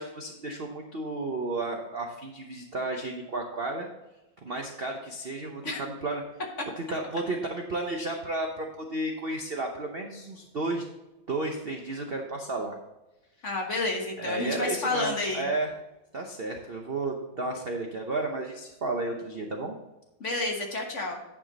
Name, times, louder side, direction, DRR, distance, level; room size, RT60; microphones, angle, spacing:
voice 1, 0.0-3.9 4.4-6.2 6.8-10.8 11.3-12.8 14.2-15.7 16.1-19.7, right 2 dB, 55° right, 2 dB, 0.6 m, -32 dB
voice 2, 13.4-15.5 20.2-21.2, left 2 dB, 40° left, 1 dB, 1.5 m, -30 dB
9.7 x 5.9 x 4.0 m, 1.0 s
omnidirectional pair, 2.2 m